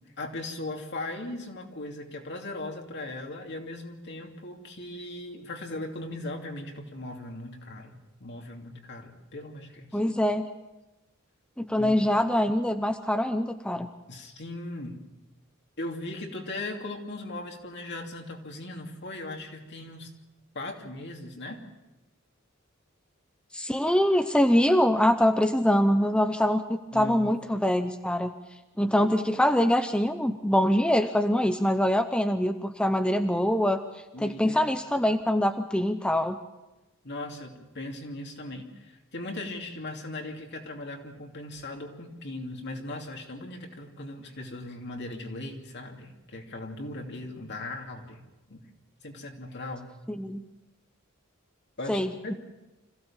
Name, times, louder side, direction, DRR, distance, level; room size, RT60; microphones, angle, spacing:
voice 1, 0.2-10.0 11.8-12.1 14.1-15.0 15.8-20.1 20.5-21.6 26.9-27.6 34.1-34.6 37.0-48.6 49.0-49.9 51.8-52.4, left 2 dB, 55° left, 2 dB, 2.9 m, -38 dB
voice 2, 9.9-10.5 11.6-13.9 23.5-28.3 28.8-33.8 34.2-36.4 50.1-50.4 51.9-52.3, left 1 dB, 5° left, 7 dB, 0.7 m, -24 dB
26.0 x 16.0 x 7.3 m, 1.0 s
head